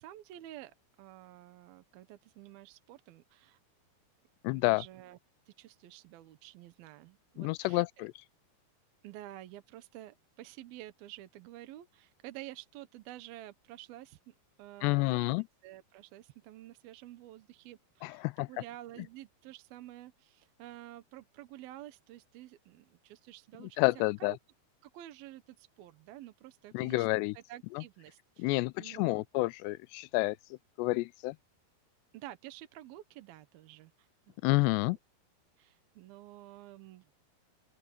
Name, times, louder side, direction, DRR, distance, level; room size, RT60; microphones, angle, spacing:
voice 1, 0.0-3.6 4.5-5.2 5.5-7.9 9.0-23.8 24.2-24.4 24.8-29.3 32.1-34.1 34.5-35.0 35.6-37.1, right 14 dB, 70° right, 2.7 m, -50 dB
voice 2, 4.4-4.8 7.4-8.1 14.8-15.4 18.0-18.5 23.6-24.4 26.7-27.4 27.8-27.9 28.4-30.4 30.8-31.4 34.4-35.0, left 23 dB, 90° left, 2.7 m, -29 dB
open air
omnidirectional pair, 4.8 m